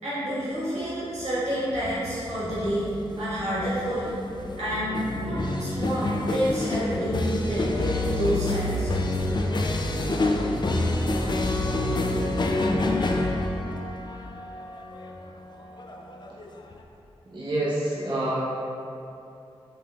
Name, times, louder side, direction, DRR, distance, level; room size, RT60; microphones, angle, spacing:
voice 1, 0.0-4.2 4.6-8.9, equal, 80° right, -10 dB, 1.5 m, -29 dB
sound 1, 1.7-16.8, left 2 dB, 40° left, 0.4 m, -28 dB
voice 2, 17.3-18.4, right 1 dB, 45° right, -7 dB, 0.7 m, -27 dB
5.1 x 3.8 x 2.3 m, 2.7 s
cardioid pair, 45°, 11 cm